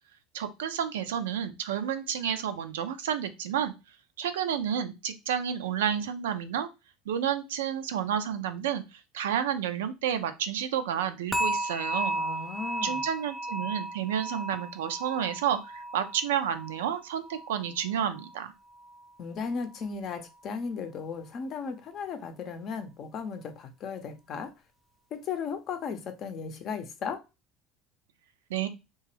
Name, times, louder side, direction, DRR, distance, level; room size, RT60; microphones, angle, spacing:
voice 1, 0.3-3.7 4.2-6.7 7.1-12.2 12.8-18.5 28.5-28.7, right 9 dB, 80° right, 0.4 m, -30 dB
sound 1, 11.3-18.4 18.7-19.1 19.6-19.7, right 1 dB, 5° left, 0.5 m, -35 dB
voice 2, 12.1-13.0 19.2-24.5 25.1-27.2, left 5 dB, 50° left, 0.6 m, -36 dB
2.9 x 2.3 x 3.2 m
hypercardioid pair, 75°, 0 cm